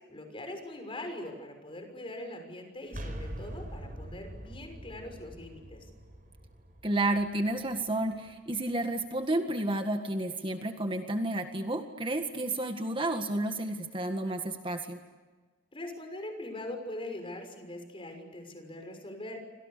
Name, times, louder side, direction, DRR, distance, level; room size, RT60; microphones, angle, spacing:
voice 1, 0.1-5.9 15.7-19.4, left 1 dB, 30° left, 5 dB, 6.2 m, -42 dB
sound 1, 2.9-8.6, right 1 dB, 45° right, 5.5 m, -44 dB
voice 2, 6.8-15.0, right 1 dB, 30° right, 6 dB, 1.8 m, -31 dB
29.5 x 26.0 x 6.8 m, 1.3 s
head